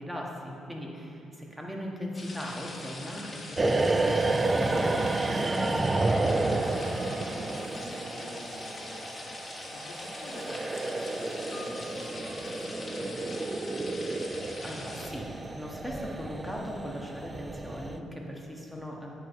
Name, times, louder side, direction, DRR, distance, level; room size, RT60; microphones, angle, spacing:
voice 1, 0.0-5.8 14.6-15.3 15.5-19.1, equal, 5° right, -2 dB, 1.3 m, -39 dB
sound 1, 2.1-15.1, left 2 dB, 30° left, 1.4 m, -43 dB
sound 2, 3.6-18.0, right 2 dB, 25° right, 0.4 m, -31 dB
voice 2, 6.5-13.4, left 2 dB, 80° left, -2 dB, 1.1 m, -47 dB
8.9 x 4.6 x 5.3 m, 2.7 s
cardioid pair, 90°, 0 cm